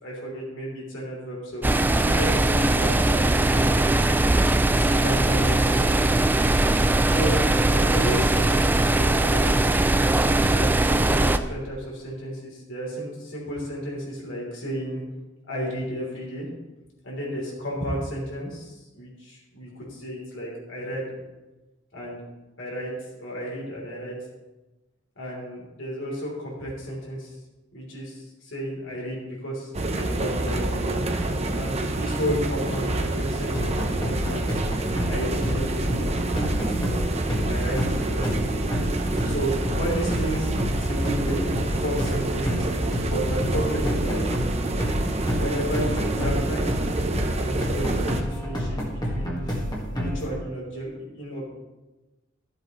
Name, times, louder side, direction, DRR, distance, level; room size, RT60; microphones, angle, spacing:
voice 1, 0.0-3.8 4.7-6.6 7.1-9.4 10.2-15.0 15.5-16.5 17.0-21.1 21.9-22.2 22.6-22.9 23.2-24.1 25.2-27.3 27.7-30.9 31.5-34.4 35.1-36.1 36.4-36.7 37.5-38.6 39.2-44.2 45.3-46.7 47.3-49.5 49.9-51.5, equal, 85° left, -4 dB, 3.5 m, -32 dB
sound 1, 1.6-11.4, right 2 dB, 10° right, 0.3 m, -20 dB
sound 2, 29.7-48.2, right 2 dB, 35° right, 0.8 m, -27 dB
sound 3, 33.5-50.4, equal, 20° left, 1.7 m, -29 dB
13.5 x 7.6 x 3.2 m, 1.1 s
head